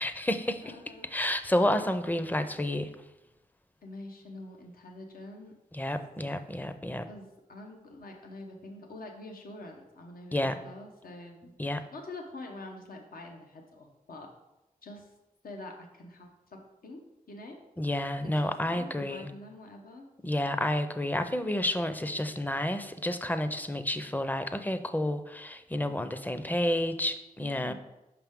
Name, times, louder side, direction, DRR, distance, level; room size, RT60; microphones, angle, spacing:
voice 1, 0.0-0.7 1.0-2.9 5.7-7.1 10.3-10.6 11.6-11.8 17.8-19.3 20.2-27.7, left 1 dB, 10° left, 10 dB, 0.5 m, -30 dB
voice 2, 0.6-1.1 3.8-5.6 7.1-14.3 14.8-15.1 15.4-17.6 18.2-20.1 27.4-27.7, left 2 dB, 75° left, 2 dB, 0.9 m, -46 dB
5.9 x 5.4 x 3.6 m, 0.96 s
cardioid pair, 50°, 15 cm